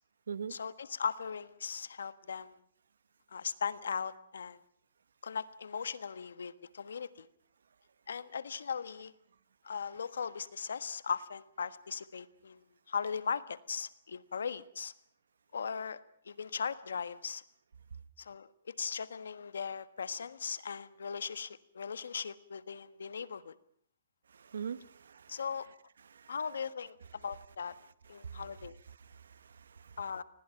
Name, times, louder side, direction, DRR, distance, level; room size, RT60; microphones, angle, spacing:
voice 1, 0.5-2.6 3.3-4.6 5.2-7.3 8.1-9.1 9.6-14.9 15.5-16.0 16.2-17.4 18.2-18.5 18.8-23.5 25.3-25.7 26.3-27.7 28.1-28.8 30.0-30.2, left 6 dB, 85° left, 1.4 m, -38 dB
voice 2, 24.3-25.4 26.1-26.3 28.2-28.4 29.1-29.9, right 7 dB, 85° right, 1.1 m, -43 dB
29.0 x 21.0 x 5.9 m
hypercardioid pair, 150°, 0 cm